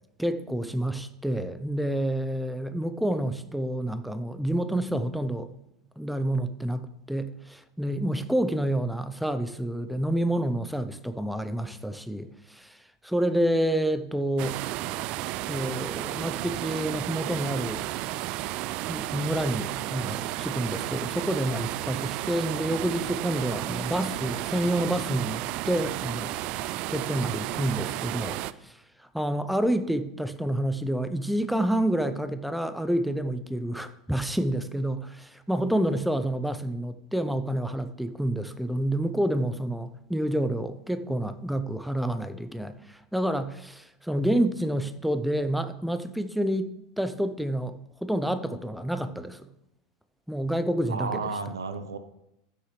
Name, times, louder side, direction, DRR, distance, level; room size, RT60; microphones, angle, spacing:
voice 1, 0.2-5.5 6.0-12.8 13.0-14.6 15.5-17.9 18.9-26.3 26.9-28.7 29.1-47.7 48.0-49.5 50.3-51.2, right 1 dB, ahead, 0.7 m, -28 dB
sound 1, 14.4-28.5, right 15 dB, 50° right, 0.4 m, -33 dB
voice 2, 50.9-52.0, right 4 dB, 85° right, 0.8 m, -33 dB
15.0 x 6.6 x 3.3 m
hypercardioid pair, 90°, 2 cm